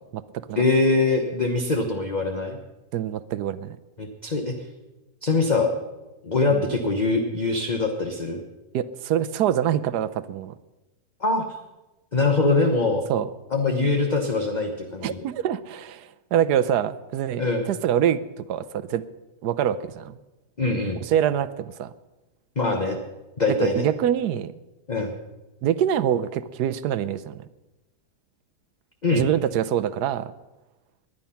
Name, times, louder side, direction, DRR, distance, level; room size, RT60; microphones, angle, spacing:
voice 1, 0.0-0.6 2.9-3.8 6.5-6.7 8.7-10.6 13.1-13.3 15.0-19.1 19.4-20.2 21.0-21.9 23.5-24.5 25.6-27.5 29.1-30.3, right 10 dB, 75° right, 15 dB, 1.2 m, -25 dB
voice 2, 0.6-2.6 4.0-4.5 5.2-5.7 6.2-8.4 11.2-11.4 12.1-13.1 13.5-15.2 17.4-17.6 20.6-21.0 22.6-23.0 23.4-23.9 24.9-25.1 29.0-29.3, left 3 dB, 30° left, 3 dB, 1.1 m, -23 dB
19.5 x 10.5 x 5.7 m, 1.0 s
omnidirectional pair, 1.8 m